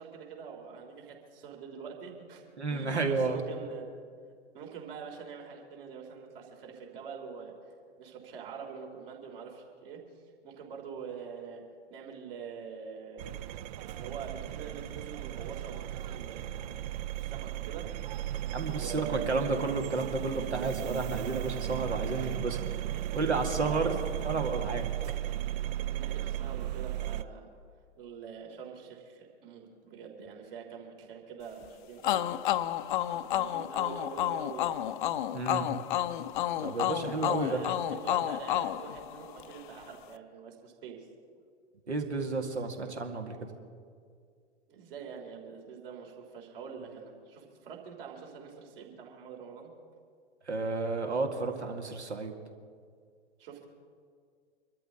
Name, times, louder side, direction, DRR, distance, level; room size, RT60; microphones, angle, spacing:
voice 1, 0.0-3.9 4.5-7.5 8.0-10.0 10.4-11.6 11.9-13.2 13.8-16.9 17.2-17.9 18.7-19.4 22.1-23.3 23.7-24.1 25.9-27.5 27.9-32.6 33.1-34.8 37.0-41.0 44.7-49.7 53.4-53.7, right 6 dB, 55° right, 1 dB, 3.4 m, -45 dB
voice 2, 2.6-3.4 18.5-22.7 23.1-24.0 24.3-24.9 35.3-35.7 36.6-37.6 41.9-43.4 50.5-52.3, right 3 dB, 80° right, 3 dB, 2.2 m, -31 dB
sound 1, 13.2-27.2, right 13 dB, 40° right, 0.5 m, -36 dB
sound 2, 32.0-39.6, left 12 dB, 45° left, 0.6 m, -31 dB
25.5 x 13.5 x 3.8 m, 2.1 s
figure-of-eight pair, 105°, 34 cm